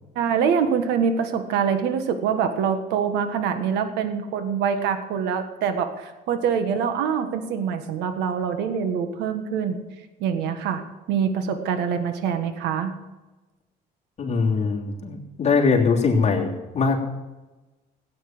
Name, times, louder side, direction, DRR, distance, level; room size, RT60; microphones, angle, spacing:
voice 1, 0.1-9.8 10.2-10.8 11.1-12.9, right 7 dB, 90° right, 8 dB, 1.5 m, -25 dB
voice 2, 14.2-17.0, left 4 dB, 40° left, -2 dB, 3.1 m, -22 dB
16.5 x 9.4 x 6.1 m, 1.1 s
cardioid pair, 110°, 17 cm